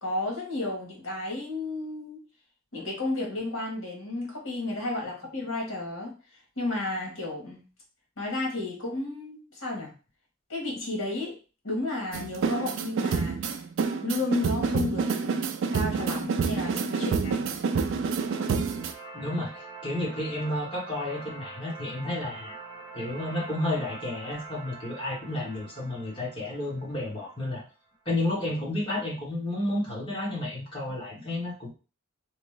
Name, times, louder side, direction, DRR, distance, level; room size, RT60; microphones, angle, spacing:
voice 1, 0.0-2.2 2.7-7.6 8.2-9.9 10.5-11.4 11.6-13.6 14.0-17.5, left 2 dB, 65° left, -1 dB, 1.3 m, -32 dB
sound 1, 12.1-18.9, right 5 dB, 60° right, 0.3 m, -28 dB
sound 2, 17.6-27.7, right 3 dB, 20° right, 0.9 m, -45 dB
voice 2, 19.1-19.5 19.8-22.5 22.9-27.6 28.0-31.7, left 1 dB, 25° left, -5 dB, 1.3 m, -31 dB
3.2 x 2.0 x 3.2 m, 0.34 s
head